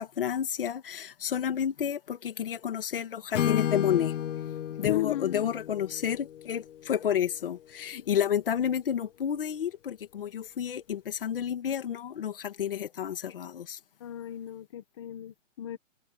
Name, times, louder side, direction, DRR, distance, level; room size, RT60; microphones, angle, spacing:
voice 1, 0.0-4.1 4.8-13.8, left 9 dB, 45° left, 2.5 m, -30 dB
Acoustic guitar / Strum, 3.3-7.3, left 10 dB, 70° left, 0.7 m, -32 dB
voice 2, 4.7-5.4 14.0-15.8, left 14 dB, 20° left, 1.5 m, -34 dB
hypercardioid pair, 180°, 39 cm